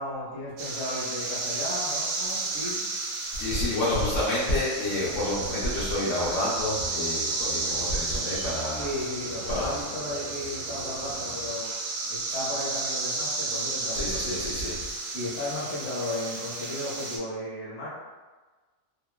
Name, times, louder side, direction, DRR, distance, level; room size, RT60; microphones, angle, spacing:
voice 1, 0.0-2.8 8.8-11.7 12.1-14.7 15.1-17.9, left 1 dB, 40° left, -7 dB, 0.9 m, -35 dB
sound 1, 0.6-17.2, right 3 dB, 90° right, 1.0 m, -32 dB
voice 2, 3.3-8.9 9.5-9.8 12.2-12.4 13.9-14.8, left 1 dB, 70° left, -7 dB, 0.9 m, -29 dB
sound 2, 4.8-11.5, right 2 dB, 10° right, 0.5 m, -44 dB
2.9 x 2.2 x 2.2 m, 1.3 s
omnidirectional pair, 1.4 m